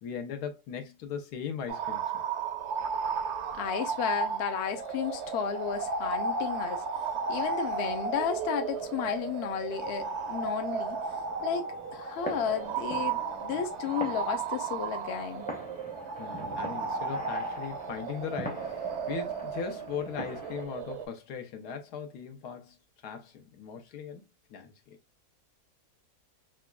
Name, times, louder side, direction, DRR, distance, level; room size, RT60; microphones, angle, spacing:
voice 1, 0.0-2.2 16.2-22.8 23.0-24.2 24.5-25.0, left 7 dB, 85° left, 1.3 m, -39 dB
sound 1, 1.7-21.1, right 5 dB, 60° right, 0.8 m, -34 dB
voice 2, 3.5-6.8 7.3-11.0 11.4-11.7 11.9-15.4, left 8 dB, 60° left, 0.7 m, -33 dB
sound 2, 8.7-20.6, right 1 dB, 10° left, 0.5 m, -44 dB
5.0 x 2.3 x 2.2 m
omnidirectional pair, 1.7 m